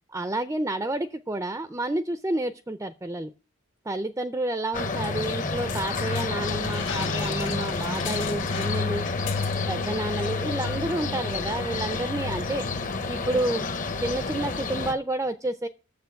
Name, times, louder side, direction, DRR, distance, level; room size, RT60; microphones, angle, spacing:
voice 1, 0.1-3.3 3.9-9.0 9.7-12.7 13.1-13.7 14.0-15.7, right 1 dB, 15° right, 10 dB, 0.4 m, -30 dB
sound 1, 4.7-14.9, left 3 dB, 40° left, 0.7 m, -29 dB
sound 2, 5.7-9.9 10.2-10.3 10.6-11.0, left 7 dB, 60° left, 1.3 m, -38 dB
7.1 x 6.8 x 8.0 m, 0.35 s
head